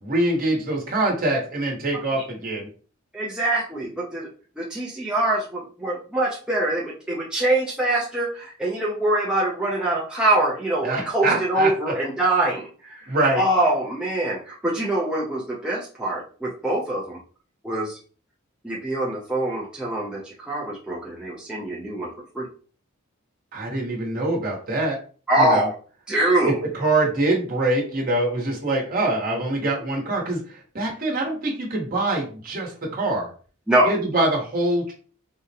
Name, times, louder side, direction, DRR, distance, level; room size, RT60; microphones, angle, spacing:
voice 1, 0.0-2.7 10.8-11.7 13.1-13.4 23.5-25.0 25.4-25.7 26.4-30.4 30.7-33.3 33.8-34.9, right 2 dB, 45° right, -2 dB, 1.0 m, -24 dB
voice 2, 3.1-4.3 4.6-13.1 13.3-17.2 17.6-18.0 18.6-22.1 22.3-22.5 25.3-25.7 26.1-26.6 33.7-33.9, right 1 dB, 5° right, -5 dB, 0.5 m, -24 dB
3.6 x 2.1 x 2.7 m, 0.40 s
head